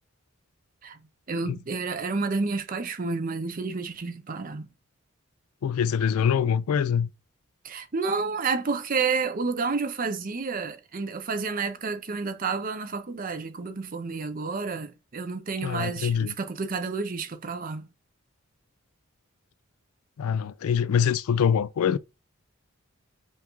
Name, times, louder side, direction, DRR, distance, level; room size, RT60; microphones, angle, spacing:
voice 1, 1.3-4.7 7.6-17.9, right 4 dB, 40° right, 0.5 m, -30 dB
voice 2, 5.6-7.1 15.6-16.3 20.2-22.0, left 7 dB, 80° left, 0.3 m, -24 dB
5.4 x 2.4 x 3.0 m
head